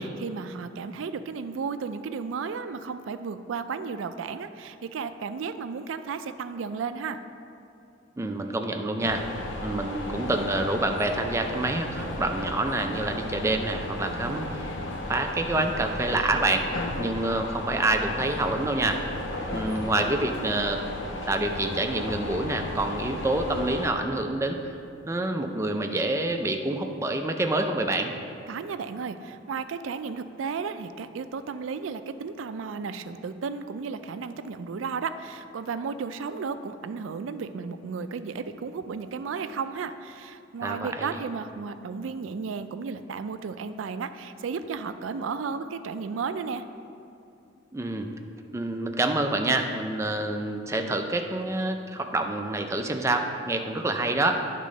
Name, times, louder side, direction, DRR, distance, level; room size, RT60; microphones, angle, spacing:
voice 1, 0.0-7.2 28.5-46.7, right 5 dB, 85° right, 10 dB, 0.4 m, -34 dB
voice 2, 8.2-9.2 9.6-14.5 15.1-16.7 17.0-19.0 19.5-20.8 21.3-24.6 25.1-28.1 40.6-41.1 47.7-48.1 48.5-54.4, right 2 dB, 15° right, 4 dB, 0.4 m, -27 dB
sound 1, 9.0-23.9, left 1 dB, 75° left, 0.8 m, -34 dB
10.0 x 3.7 x 5.1 m, 2.6 s
head